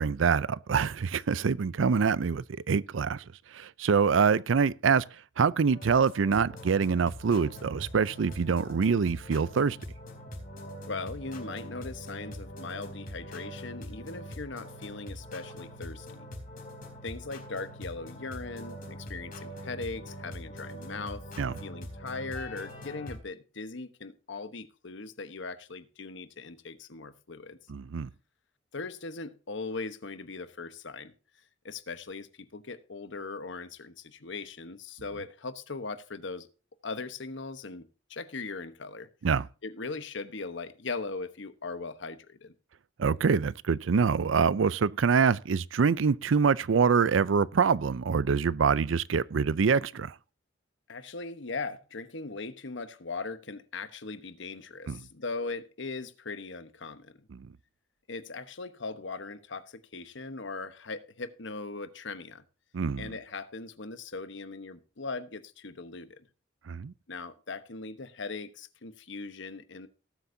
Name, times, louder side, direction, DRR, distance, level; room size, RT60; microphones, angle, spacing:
voice 1, 0.0-3.2 3.5-5.1 5.4-9.8 21.4-21.5 27.7-28.1 39.2-39.5 43.0-50.1 54.9-55.0 57.3-57.5 62.7-63.1 66.7-66.9, right 5 dB, 80° right, 0.5 m, -25 dB
sound 1, 5.7-23.2, equal, 45° left, 4.6 m, -43 dB
voice 2, 10.9-16.3 17.0-21.2 21.6-27.6 28.7-31.1 31.6-36.5 36.8-39.1 39.6-42.5 50.9-57.2 58.1-62.4 63.0-66.2 67.1-69.9, left 3 dB, 65° left, 1.1 m, -39 dB
19.0 x 8.0 x 2.7 m
head